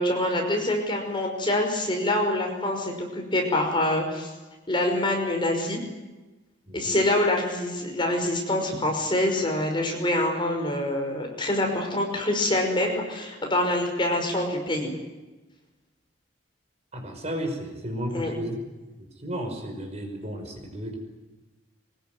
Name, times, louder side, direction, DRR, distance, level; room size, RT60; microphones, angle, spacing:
voice 1, 0.0-4.3 4.7-5.8 6.7-14.9 18.1-18.3, left 1 dB, 25° left, 2 dB, 5.6 m, -25 dB
voice 2, 16.9-18.6 19.2-21.0, equal, 35° right, 4 dB, 5.5 m, -33 dB
23.5 x 21.0 x 9.4 m, 1.1 s
head